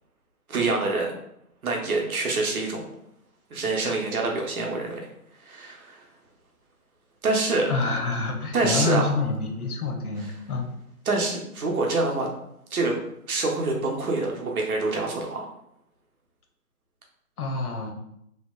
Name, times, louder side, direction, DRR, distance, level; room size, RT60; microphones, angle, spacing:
voice 1, 0.5-1.1 1.6-2.8 3.5-5.1 5.4-6.0 7.2-7.7 8.5-9.1 11.1-12.3 12.7-13.0 13.3-15.5, right 3 dB, 65° right, 0 dB, 0.8 m, -26 dB
voice 2, 7.7-10.7 17.4-17.9, left 3 dB, 70° left, 2 dB, 0.7 m, -27 dB
2.8 x 2.1 x 2.2 m, 0.76 s
figure-of-eight pair, 160°, 46 cm